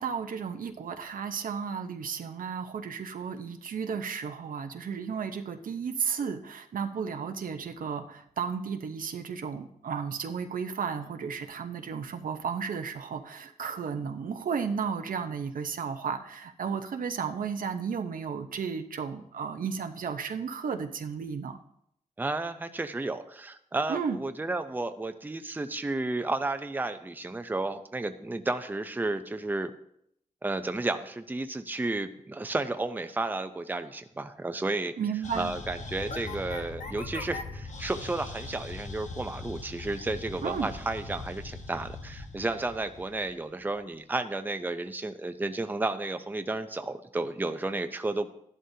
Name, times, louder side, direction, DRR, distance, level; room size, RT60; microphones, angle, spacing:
voice 1, 0.0-21.6 23.9-24.2 35.0-35.5 40.4-40.7, right 6 dB, 85° right, 6 dB, 0.9 m, -33 dB
voice 2, 22.2-29.7 30.4-34.9 35.3-48.3, right 2 dB, 15° right, 8 dB, 0.6 m, -32 dB
sound 1, 35.2-43.8, left 3 dB, 60° left, 1.2 m, -40 dB
14.0 x 11.0 x 2.8 m, 0.73 s
wide cardioid pair, 120°, 14 cm